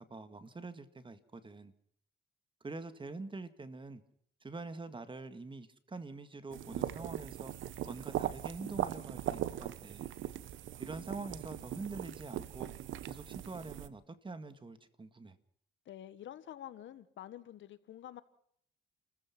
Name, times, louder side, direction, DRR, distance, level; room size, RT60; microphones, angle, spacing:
voice 1, 0.0-1.7 2.6-4.0 4.4-7.5 7.9-10.0 10.8-12.7 13.0-15.4, right 3 dB, 25° right, 11 dB, 2.0 m, -45 dB
sound 1, 6.5-13.9, right 12 dB, 75° right, 1.0 m, -39 dB
voice 2, 15.8-18.2, left 11 dB, 70° left, 14 dB, 1.4 m, -48 dB
29.0 x 14.5 x 6.0 m, 0.67 s
cardioid pair, 90°, 20 cm